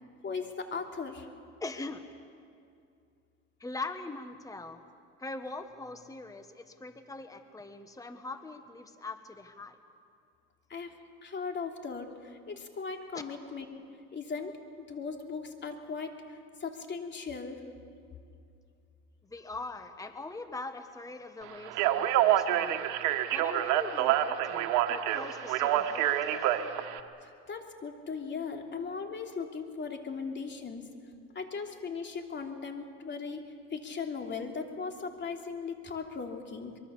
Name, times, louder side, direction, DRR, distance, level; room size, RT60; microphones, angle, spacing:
voice 1, 0.2-1.3 10.7-10.9 11.2-13.7 14.1-17.6 27.2-30.9 31.3-33.4 33.7-36.8, left 5 dB, 40° left, 3 dB, 3.0 m, -38 dB
voice 2, 1.6-2.0 3.6-4.8 5.2-9.8 13.1-13.2 19.2-22.8 23.3-26.7, left 3 dB, 10° left, 8 dB, 1.3 m, -42 dB
Speech, 21.7-27.0, right 12 dB, 80° right, 1.4 m, -27 dB
24.0 x 23.0 x 7.2 m, 2.4 s
supercardioid pair, 85°, 30 cm